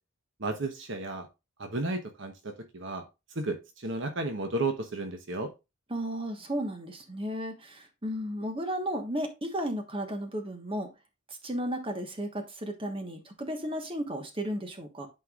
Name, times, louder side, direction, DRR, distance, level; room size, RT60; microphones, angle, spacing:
voice 1, 0.4-1.3 1.6-3.0 3.3-5.5, right 2 dB, 55° right, 1.1 m, -33 dB
voice 2, 5.9-10.9 11.3-15.1, equal, 25° right, 1.3 m, -34 dB
11.5 x 4.6 x 2.4 m
head